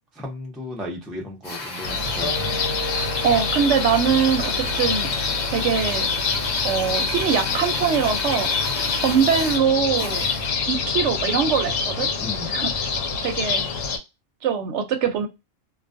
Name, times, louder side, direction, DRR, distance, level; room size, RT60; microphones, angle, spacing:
voice 1, 0.1-2.5 12.2-12.5, left 1 dB, ahead, -2 dB, 0.3 m, -35 dB
Drill, 1.4-10.7, left 3 dB, 45° left, 0.7 m, -32 dB
sound 1, 1.8-14.0, left 4 dB, 85° left, 1.0 m, -26 dB
Wind instrument woodwind instrument, 2.2-7.3, left 1 dB, 60° left, 1.1 m, -36 dB
voice 2, 3.2-5.1 5.5-6.1 6.6-8.5 9.0-10.3 10.7-12.1 12.5-12.7 13.2-13.7 14.4-15.3, right 7 dB, 70° right, 6 dB, 0.8 m, -22 dB
2.3 x 2.3 x 2.4 m, 0.23 s
omnidirectional pair, 1.3 m